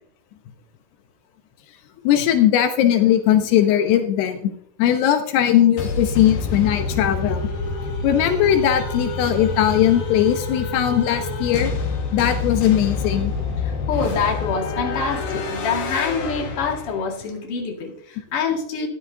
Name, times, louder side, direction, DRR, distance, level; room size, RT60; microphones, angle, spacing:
voice 1, 2.0-4.5 4.8-7.4 8.0-11.7 12.1-13.3, left 11 dB, 85° left, 6 dB, 3.2 m, -19 dB
sound 1, 5.8-17.2, left 4 dB, 60° left, 3.1 m, -27 dB
voice 2, 13.6-18.9, left 5 dB, 40° left, 0 dB, 2.7 m, -26 dB
13.5 x 12.0 x 2.8 m, 0.65 s
omnidirectional pair, 4.6 m